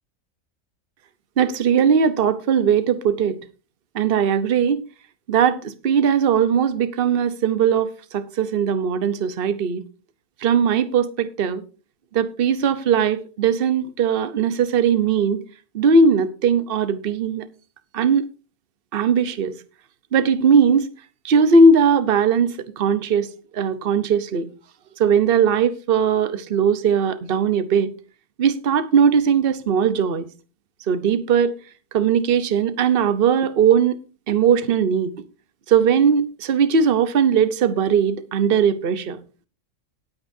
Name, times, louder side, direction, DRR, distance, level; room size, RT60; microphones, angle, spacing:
voice 1, 1.4-3.4 3.9-4.8 5.3-9.8 10.4-11.6 12.1-15.4 15.7-17.4 17.9-18.3 18.9-19.5 20.1-20.8 21.2-23.3 23.5-24.5 25.0-27.9 28.4-30.3 30.9-31.5 31.9-34.0 34.3-35.1 35.7-39.2, right 6 dB, 50° right, 1.0 m, -19 dB
18.0 x 9.0 x 2.7 m
omnidirectional pair, 1.4 m